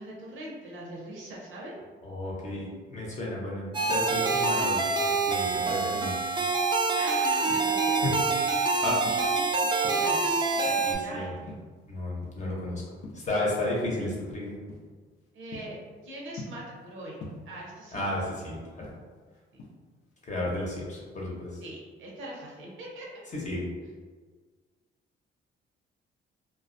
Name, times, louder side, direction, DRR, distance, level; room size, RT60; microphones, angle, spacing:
voice 1, 0.0-1.7 7.0-8.0 9.1-11.4 15.3-15.8 16.0-18.2 21.6-23.1, right 1 dB, 80° right, -3 dB, 0.7 m, -41 dB
voice 2, 2.0-4.8 5.3-6.1 8.8-9.0 10.8-11.3 11.9-12.8 13.1-14.5 17.9-18.9 20.2-21.5 23.3-23.6, left 1 dB, 35° left, -4 dB, 0.8 m, -33 dB
sound 1, 3.7-10.9, right 4 dB, 25° right, 0.4 m, -26 dB
sound 2, 7.5-8.6 9.0-10.3 10.7-11.0 11.5-12.6 12.9-13.4 13.9-14.2 14.7-14.9 15.3-16.9 17.2-18.3 18.6-20.1 20.5-20.8, left 2 dB, 80° left, 0.5 m, -45 dB
2.3 x 2.1 x 2.5 m, 1.5 s
cardioid pair, 90°, 20 cm